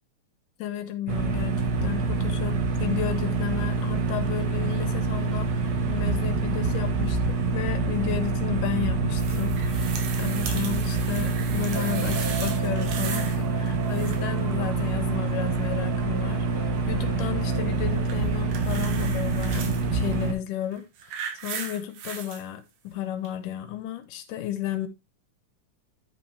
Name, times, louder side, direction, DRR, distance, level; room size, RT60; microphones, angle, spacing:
voice 1, 0.6-20.8 21.4-24.9, left 11 dB, 90° left, 2.6 m, -33 dB
sound 1, 1.1-20.3, right 3 dB, 65° right, 1.1 m, -26 dB
sound 2, 9.2-13.4 13.7-14.4 18.1-19.8 20.6-22.4 23.3-23.4, right 7 dB, 90° right, 3.0 m, -37 dB
sound 3, 11.7-18.4, right 2 dB, 45° right, 3.4 m, -39 dB
9.8 x 5.5 x 3.2 m
omnidirectional pair, 3.6 m